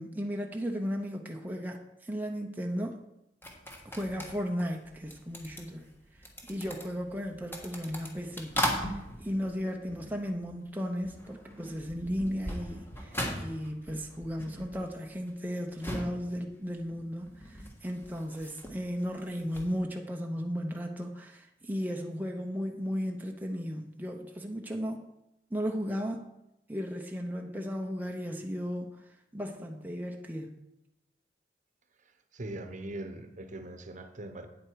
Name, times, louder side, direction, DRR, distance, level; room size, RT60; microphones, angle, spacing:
voice 1, 0.0-3.0 3.8-5.9 6.4-8.5 9.2-25.0 25.5-26.3 26.7-29.0 29.3-30.5, equal, 10° right, 2 dB, 0.6 m, -35 dB
sound 1, 3.4-10.7 11.0-19.8, equal, 15° left, 1.4 m, -39 dB
voice 2, 32.3-34.5, right 1 dB, 45° right, 8 dB, 0.9 m, -41 dB
8.8 x 8.0 x 4.6 m, 0.89 s
head